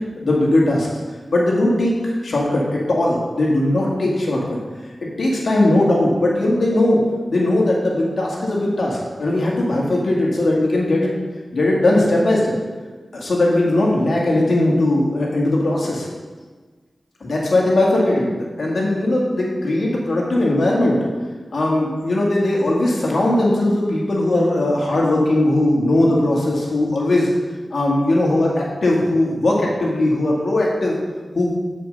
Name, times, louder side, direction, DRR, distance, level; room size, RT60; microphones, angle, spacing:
voice 1, 0.2-0.9 1.3-4.6 5.0-7.0 7.3-11.2 11.5-12.5 13.1-16.1 17.2-21.0 21.5-27.3 27.7-31.0 31.3-31.6, left 1 dB, 75° left, -3 dB, 1.9 m, -19 dB
7.3 x 5.0 x 6.3 m, 1.4 s
cardioid pair, 60°, 0 cm